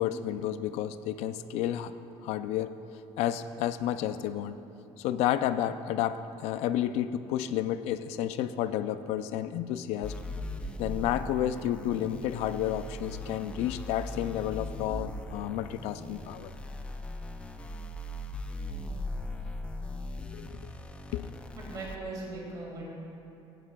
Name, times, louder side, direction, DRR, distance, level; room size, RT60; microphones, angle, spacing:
voice 1, 0.0-1.9 2.2-2.8 3.2-4.6 5.0-10.1 10.8-16.5 20.3-20.6 21.1-21.3, left 11 dB, 80° left, 12 dB, 0.4 m, -31 dB
sound 1, 10.0-21.9, left 1 dB, 10° left, 0.4 m, -39 dB
voice 2, 21.5-22.8, right 3 dB, 35° right, -4 dB, 2.1 m, -39 dB
16.0 x 9.8 x 2.3 m, 2.8 s
cardioid pair, 165°, 11 cm